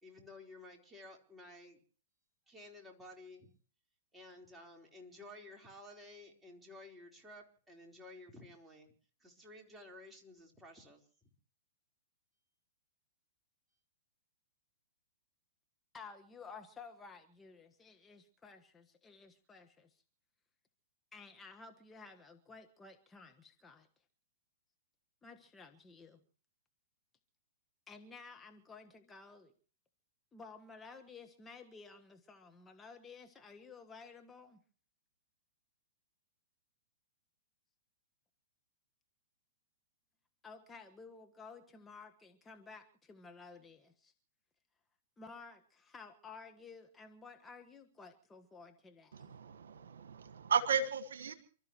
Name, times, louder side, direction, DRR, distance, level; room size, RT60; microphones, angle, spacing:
voice 1, 0.0-1.8 2.5-3.5 4.1-8.9 9.2-11.3, left 1 dB, 10° right, 0 dB, 4.2 m, -54 dB
voice 2, 15.9-20.0 21.1-23.9 25.2-26.2 27.9-29.5 30.3-34.6 40.4-44.1 45.2-49.4, left 4 dB, 15° left, 4 dB, 1.5 m, -54 dB
voice 3, 49.1-51.3, right 6 dB, 70° right, 10 dB, 1.7 m, -34 dB
29.0 x 13.0 x 3.1 m, 0.43 s
hypercardioid pair, 115°, 0 cm